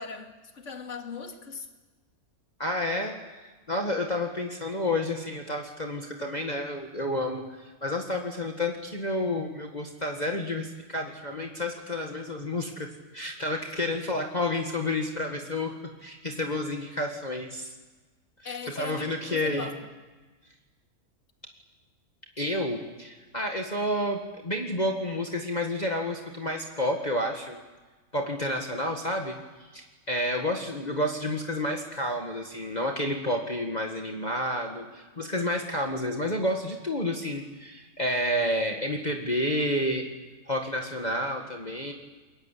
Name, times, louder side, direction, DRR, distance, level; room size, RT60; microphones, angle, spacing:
voice 1, 0.0-1.7 18.4-19.8, left 5 dB, 55° left, 4 dB, 2.6 m, -39 dB
voice 2, 2.6-15.7 16.0-17.8 18.4-19.7 22.4-27.6 28.1-40.1 40.5-41.9, left 1 dB, 30° left, 1 dB, 2.0 m, -30 dB
28.0 x 22.5 x 8.5 m, 1.3 s
omnidirectional pair, 1.6 m